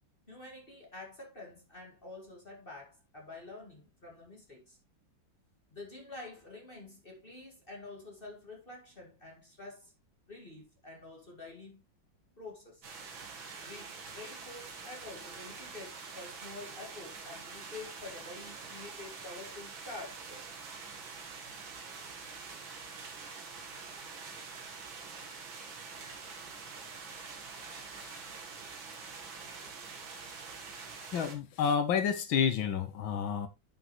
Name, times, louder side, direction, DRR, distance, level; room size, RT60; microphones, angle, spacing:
voice 1, 0.3-4.8 5.7-9.9 10.3-11.8 12.4-12.9 13.6-20.5, left 2 dB, 30° left, 2.3 m, -48 dB
sound 1, 12.8-31.4, right 4 dB, 85° right, 2.4 m, -46 dB
voice 2, 31.1-33.5, left 7 dB, 80° left, 1.9 m, -30 dB
10.0 x 6.2 x 3.2 m
omnidirectional pair, 2.1 m